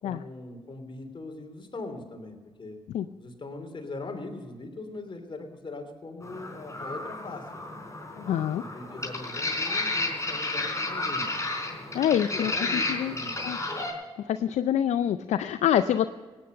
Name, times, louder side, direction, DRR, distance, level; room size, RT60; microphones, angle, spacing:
voice 1, 0.0-2.8 3.2-7.8 8.2-11.3 11.9-13.5, left 2 dB, 45° left, 4 dB, 3.1 m, -41 dB
sound 1, 6.2-13.9, left 2 dB, 25° left, 4.3 m, -32 dB
voice 2, 8.2-8.6 11.9-13.1 13.4-13.6 14.3-16.1, left 10 dB, 70° left, 12 dB, 0.4 m, -26 dB
16.5 x 9.8 x 6.6 m, 1.4 s
hypercardioid pair, 40°, 12 cm